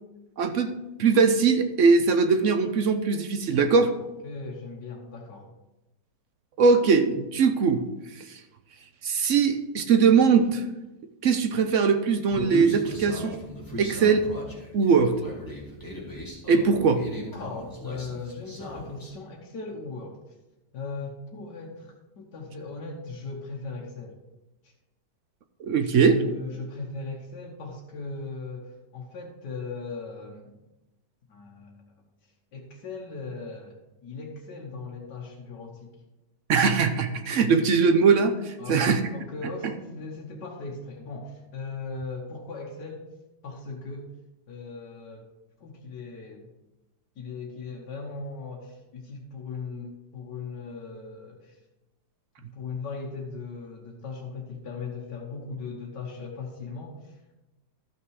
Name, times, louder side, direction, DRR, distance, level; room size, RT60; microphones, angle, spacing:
voice 1, 0.4-0.7 1.0-3.9 6.6-7.8 8.3-8.4 9.0-10.6 11.2-13.4 13.8-14.3 14.7-15.1 16.5-17.0 25.6-26.2 36.5-39.0, right 5 dB, 60° right, 9 dB, 0.8 m, -21 dB
voice 2, 4.2-5.5 17.3-20.2 20.7-24.2 24.6-24.7 25.8-30.6 31.3-32.0 32.5-36.0 38.6-43.1 43.4-44.1 44.5-45.3 45.6-46.5 47.2-51.6 52.5-57.4, left 4 dB, 75° left, -2 dB, 1.8 m, -38 dB
Human voice, 12.3-19.1, equal, 10° left, 2.4 m, -37 dB
13.0 x 5.9 x 4.8 m, 1.0 s
omnidirectional pair, 1.8 m